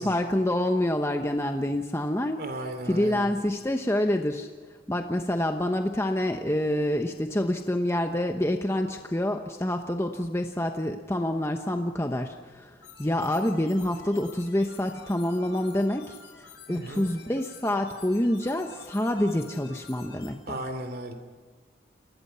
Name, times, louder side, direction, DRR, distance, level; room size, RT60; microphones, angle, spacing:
voice 1, 0.0-2.4 2.9-4.5 4.9-16.2 16.7-20.6, left 1 dB, 15° left, 5 dB, 1.0 m, -27 dB
voice 2, 2.4-3.3 16.7-17.1 20.5-21.1, right 1 dB, 50° right, 7 dB, 2.9 m, -35 dB
sound 1, 12.8-20.3, left 6 dB, 65° left, 6.5 m, -50 dB
30.0 x 20.0 x 5.7 m, 1.5 s
head